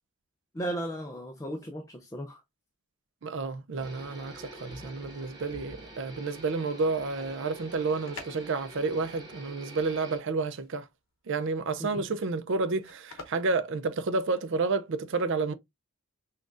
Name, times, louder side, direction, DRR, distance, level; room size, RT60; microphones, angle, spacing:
voice 1, 0.5-2.4 11.8-12.0, right 1 dB, 15° left, 0.4 m, -35 dB
voice 2, 3.2-10.9 11.3-15.5, right 3 dB, 55° right, 0.5 m, -30 dB
sound 1, 3.8-10.2, right 1 dB, 20° right, 1.2 m, -46 dB
sound 2, 7.7-14.6, left 3 dB, 60° left, 1.0 m, -50 dB
6.0 x 2.3 x 2.5 m
head